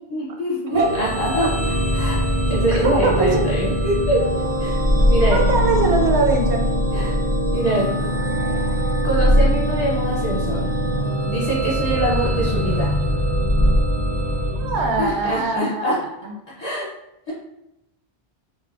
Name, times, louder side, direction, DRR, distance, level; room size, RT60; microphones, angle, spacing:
voice 1, 0.1-2.2 2.5-4.2 4.6-4.8 5.1-5.4 6.9-7.2 7.5-8.1 9.0-10.7 11.3-12.9 15.0-16.0 16.6-16.9 17.3-17.4, right 1 dB, 40° left, -6 dB, 0.8 m, -24 dB
sound 1, 0.7-15.4, equal, 25° right, 0.3 m, -21 dB
voice 2, 2.7-3.4 5.3-6.7 14.6-16.3, right 3 dB, 80° right, 2 dB, 0.8 m, -22 dB
3.2 x 2.0 x 2.3 m, 0.86 s
omnidirectional pair, 1.1 m